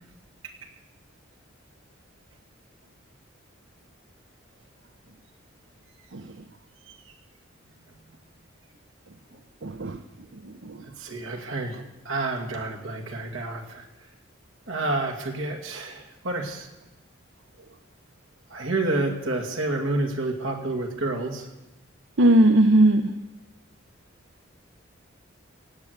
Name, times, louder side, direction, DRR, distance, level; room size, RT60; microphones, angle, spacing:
voice 1, 9.6-10.0 10.6-10.8 22.2-23.1, right 1 dB, 65° right, 8 dB, 0.7 m, -18 dB
voice 2, 10.8-13.9 14.7-16.7 18.5-21.5, right 2 dB, 90° right, 1 dB, 2.4 m, -29 dB
17.5 x 8.4 x 8.1 m, 0.98 s
head